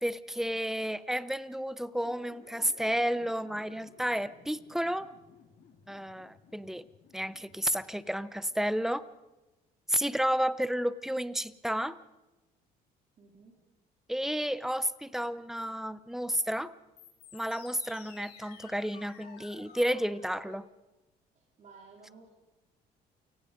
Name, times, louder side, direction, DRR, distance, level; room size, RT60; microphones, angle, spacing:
voice 1, 0.0-5.1 5.9-6.8 7.1-9.0 9.9-12.0 14.1-16.7 17.3-20.7, equal, ahead, 16 dB, 0.9 m, -31 dB
sound 1, 2.0-8.7 17.0-20.6, left 6 dB, 75° left, 4.5 m, -55 dB
voice 2, 13.2-13.6 21.6-22.3, right 4 dB, 45° right, -1 dB, 4.2 m, -55 dB
29.0 x 18.0 x 5.3 m, 1.1 s
cardioid pair, 110°, 17 cm